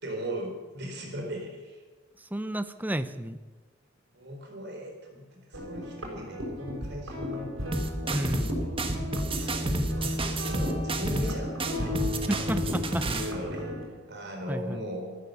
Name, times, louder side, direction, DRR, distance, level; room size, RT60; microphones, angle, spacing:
voice 1, 0.0-1.8 4.1-7.5 8.0-12.0 13.0-15.2, equal, 55° right, 2 dB, 4.2 m, -39 dB
voice 2, 2.3-3.4 8.1-8.5 12.3-13.1 14.5-14.8, right 1 dB, 10° right, 12 dB, 0.6 m, -31 dB
sound 1, 5.5-13.8, left 1 dB, 80° right, 5.7 m, -33 dB
sound 2, 7.7-8.5 8.8-11.3 11.6-13.3, right 2 dB, 25° right, 1.3 m, -31 dB
14.0 x 12.5 x 6.9 m, 1.3 s
head